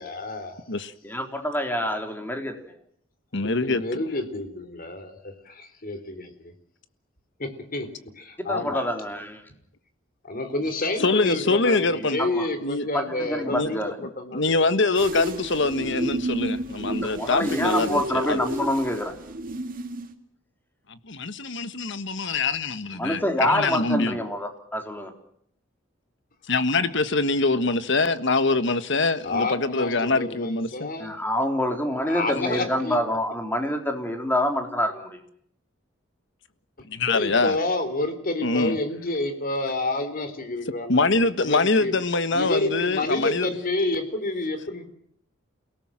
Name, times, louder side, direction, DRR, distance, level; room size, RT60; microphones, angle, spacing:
voice 1, 0.0-0.6 3.6-5.3 5.8-6.2 7.4-7.9 8.2-8.9 10.2-14.4 29.2-31.1 32.0-33.0 36.8-41.9 42.3-44.9, left 2 dB, 45° left, 3.7 m, -29 dB
voice 2, 1.0-2.5 8.5-9.4 12.2-12.5 12.9-14.0 17.1-19.1 23.0-25.1 31.0-35.2, left 1 dB, 10° left, 3.6 m, -26 dB
voice 3, 3.3-4.0 11.0-12.2 12.6-12.9 13.5-18.4 20.9-24.2 26.5-30.9 36.9-37.6 38.4-38.8 40.9-43.5, left 3 dB, 65° left, 1.5 m, -24 dB
sound 1, 14.9-20.1, right 1 dB, 45° right, 2.3 m, -31 dB
29.0 x 18.0 x 7.6 m
head